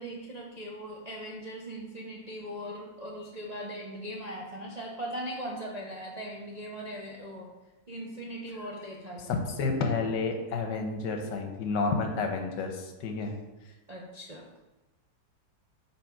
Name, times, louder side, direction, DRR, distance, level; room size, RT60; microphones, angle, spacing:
voice 1, 0.0-7.5 7.9-9.4 13.9-14.5, equal, 45° right, -3 dB, 0.5 m, -39 dB
voice 2, 9.3-13.3, left 4 dB, 80° left, 4 dB, 1.5 m, -30 dB
5.8 x 5.1 x 4.6 m, 1.1 s
omnidirectional pair, 1.9 m